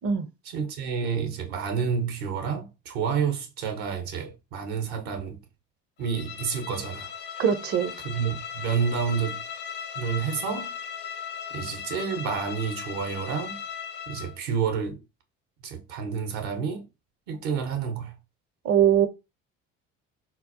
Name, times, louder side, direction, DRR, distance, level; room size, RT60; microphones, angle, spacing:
voice 1, 0.4-5.4 6.0-7.1 8.0-9.4 9.9-10.8 11.5-13.6 14.1-15.0 15.6-16.9 17.3-18.1, right 6 dB, 65° right, 0.9 m, -29 dB
Bowed string instrument, 6.0-14.4, left 7 dB, 30° left, 0.4 m, -37 dB
voice 2, 7.4-7.9 18.6-19.1, right 9 dB, 35° right, 0.6 m, -21 dB
3.9 x 2.0 x 2.7 m
hypercardioid pair, 60°, 38 cm